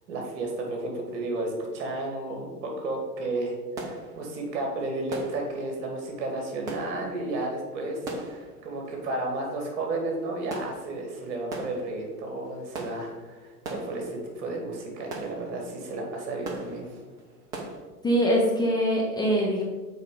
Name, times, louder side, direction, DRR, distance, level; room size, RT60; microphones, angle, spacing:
voice 1, 0.1-16.9, right 2 dB, 45° right, 1 dB, 2.2 m, -32 dB
sound 1, 3.8-17.8, right 2 dB, 10° right, 0.3 m, -42 dB
voice 2, 18.0-19.6, equal, 10° left, -3 dB, 0.8 m, -23 dB
6.6 x 4.8 x 4.9 m, 1.3 s
figure-of-eight pair, 95°, 48 cm